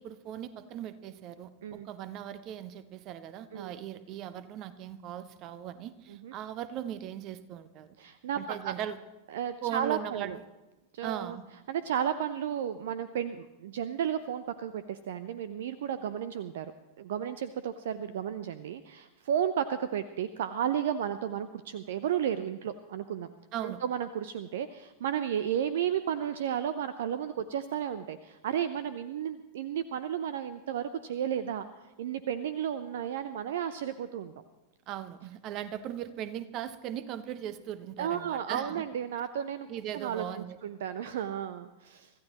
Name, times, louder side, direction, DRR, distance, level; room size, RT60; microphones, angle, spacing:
voice 1, 0.0-7.9 8.3-9.0 9.6-10.4 11.0-11.4 23.5-23.8 34.9-38.8 39.7-40.6, right 10 dB, 40° right, 13 dB, 1.1 m, -39 dB
voice 2, 8.0-8.7 9.3-10.4 10.9-11.4 11.7-16.7 17.0-23.3 23.6-31.7 32.0-34.4 38.0-39.7 39.9-42.1, right 9 dB, 55° right, 13 dB, 0.7 m, -33 dB
25.0 x 14.5 x 3.0 m, 1.1 s
figure-of-eight pair, 90°, 0 cm